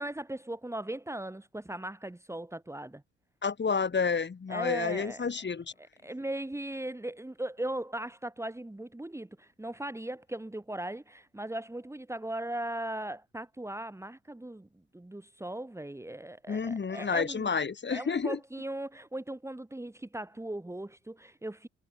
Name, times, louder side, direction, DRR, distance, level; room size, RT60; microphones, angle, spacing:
voice 1, 0.0-3.0 4.5-5.2 5.8-14.7 14.9-17.6 17.9-21.7, right 1 dB, 10° right, 3.2 m, -38 dB
voice 2, 3.4-5.7 16.5-18.4, left 5 dB, 35° left, 6.2 m, -30 dB
cardioid pair, 90°, 30 cm